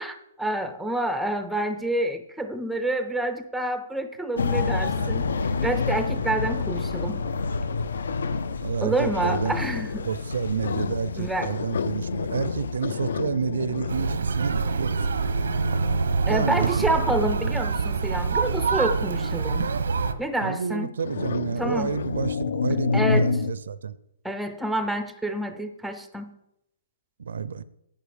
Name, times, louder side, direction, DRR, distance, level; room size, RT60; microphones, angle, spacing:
voice 1, 0.0-5.3 5.6-7.3 8.8-10.1 11.2-11.5 16.3-19.7 20.2-20.9 21.6-21.9 22.9-23.3 24.2-26.4, right 1 dB, ahead, 0.5 m, -28 dB
sound 1, 4.4-13.2, left 4 dB, 85° left, 0.9 m, -29 dB
voice 2, 4.8-5.1 8.6-9.6 10.1-15.2 16.3-16.9 20.4-24.0 27.2-27.6, right 6 dB, 75° right, 0.6 m, -29 dB
sound 2, 9.2-10.3 10.6-17.5 18.4-18.7 21.0-23.5, left 5 dB, 60° left, 0.5 m, -30 dB
sound 3, 13.9-20.1, right 4 dB, 90° right, 0.9 m, -25 dB
10.0 x 9.0 x 5.0 m
hypercardioid pair, 175°, 0 cm